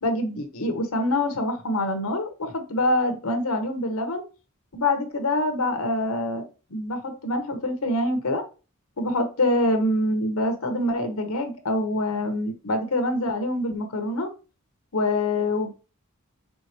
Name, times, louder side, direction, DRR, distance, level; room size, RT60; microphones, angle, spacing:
voice 1, 0.0-4.2 4.7-6.4 6.7-8.4 9.0-14.3 14.9-15.7, left 1 dB, 85° left, 7 dB, 1.0 m, -25 dB
4.6 x 3.6 x 2.9 m, 0.32 s
head